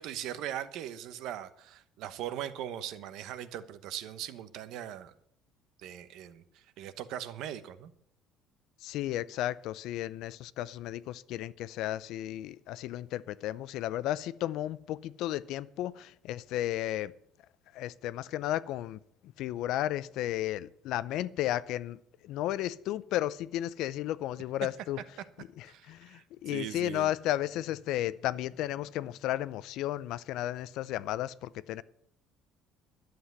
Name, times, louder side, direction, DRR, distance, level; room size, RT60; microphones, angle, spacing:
voice 1, 0.0-5.1 5.8-7.9 25.7-27.1, right 11 dB, 65° right, 1.0 m, -40 dB
voice 2, 8.8-17.1 17.7-25.0 25.4-31.8, left 13 dB, 65° left, 0.5 m, -34 dB
11.5 x 7.8 x 9.5 m
cardioid pair, 155°, 0 cm